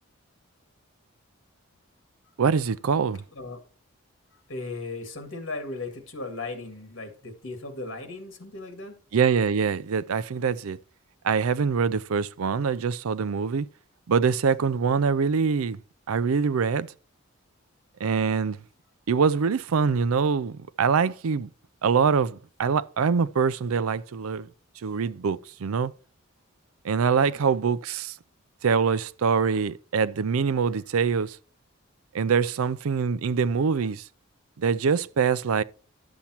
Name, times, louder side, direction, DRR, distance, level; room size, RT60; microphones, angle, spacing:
voice 1, 2.4-3.2 9.1-10.8 11.2-13.7 14.1-15.8 16.1-16.9 18.0-18.6 19.1-21.5 21.8-24.5 24.8-25.9 26.8-28.1 28.6-31.4 32.1-34.0 34.6-35.6, right 5 dB, 80° right, 0.5 m, -24 dB
voice 2, 4.5-9.0 27.2-27.6, left 3 dB, 60° left, 2.0 m, -37 dB
12.0 x 7.1 x 2.9 m
head